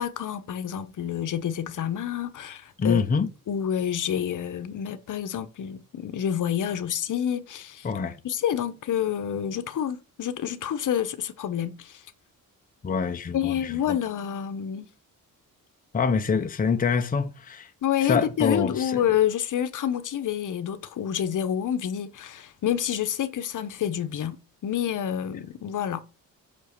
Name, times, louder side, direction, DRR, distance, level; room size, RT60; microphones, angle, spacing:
voice 1, 0.0-3.0 3.5-7.9 8.2-12.0 13.3-14.9 17.8-26.0, left 9 dB, 60° left, 1.0 m, -28 dB
voice 2, 2.8-3.3 7.8-8.2 12.8-14.0 15.9-17.7 18.0-19.0, left 5 dB, 25° left, 0.7 m, -25 dB
6.1 x 5.4 x 6.6 m
wide cardioid pair, 150°, 35 cm